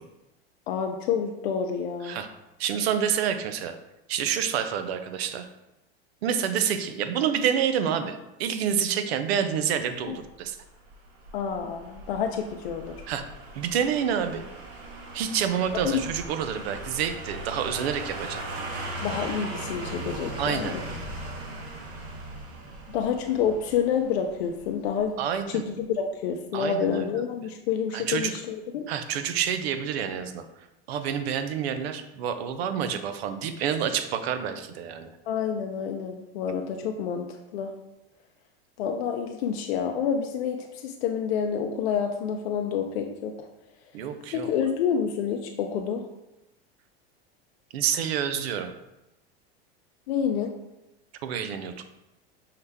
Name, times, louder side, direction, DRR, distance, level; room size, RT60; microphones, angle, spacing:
voice 1, 0.7-2.2 10.1-10.2 11.3-13.0 15.8-16.0 19.0-20.8 22.9-25.1 25.5-28.9 35.3-37.7 38.8-43.5 44.3-46.0 50.1-50.5, left 7 dB, 80° left, 4 dB, 0.5 m, -28 dB
voice 2, 2.6-3.8 4.1-5.5 6.2-10.6 13.1-13.2 13.5-14.4 15.1-18.4 20.4-20.7 25.2-25.6 26.5-27.1 27.9-28.3 28.9-30.4 30.9-35.1 43.9-44.5 47.7-48.7 51.2-51.8, right 8 dB, 80° right, 9 dB, 0.5 m, -28 dB
sound 1, 10.2-25.1 25.4-25.5, right 2 dB, 45° right, 0.9 m, -39 dB
5.6 x 2.1 x 3.4 m, 0.94 s
supercardioid pair, 110°, 31 cm